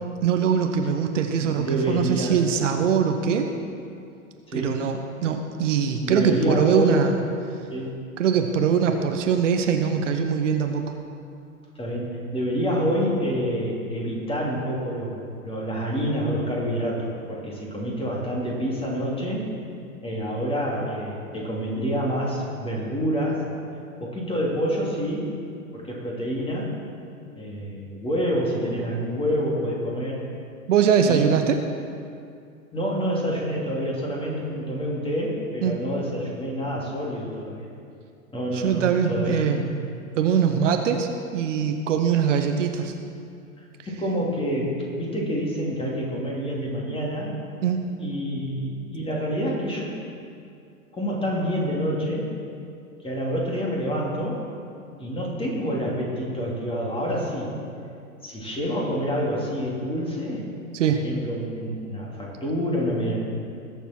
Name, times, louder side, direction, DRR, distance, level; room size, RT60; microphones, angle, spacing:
voice 1, 0.2-3.5 4.5-7.1 8.2-10.8 30.7-31.6 35.6-35.8 38.5-39.7 40.2-42.9 47.6-47.8 60.7-61.0, right 7 dB, 60° right, 5 dB, 1.0 m, -22 dB
voice 2, 1.4-2.4 4.5-4.8 6.0-7.1 7.7-7.9 11.7-19.5 20.0-23.5 24.0-25.3 25.7-26.7 27.3-30.2 31.0-31.3 32.7-37.7 38.3-39.6 43.9-47.4 48.0-49.9 50.9-52.3 53.0-54.4 55.0-57.5 58.2-60.5 61.0-63.2, equal, 15° left, -3 dB, 2.9 m, -27 dB
20.5 x 7.1 x 4.5 m, 2.4 s
figure-of-eight pair, 95°, 42 cm